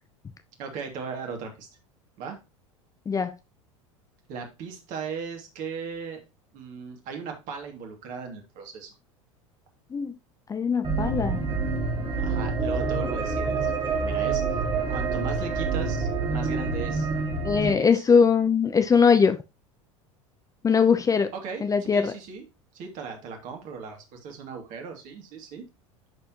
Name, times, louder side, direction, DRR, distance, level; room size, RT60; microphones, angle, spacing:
voice 1, 0.6-1.7 2.2-2.4 4.3-6.2 6.5-8.9 12.2-14.6 14.9-17.1 17.6-18.0 21.3-22.4 22.7-25.6, right 5 dB, 50° right, 2.5 m, -37 dB
voice 2, 10.5-11.4 17.4-19.4 20.6-21.3 21.6-22.1, left 6 dB, 20° left, 0.6 m, -21 dB
sound 1, 10.8-17.7, right 4 dB, 30° right, 2.2 m, -27 dB
10.5 x 4.4 x 3.0 m
hypercardioid pair, 80°, 16 cm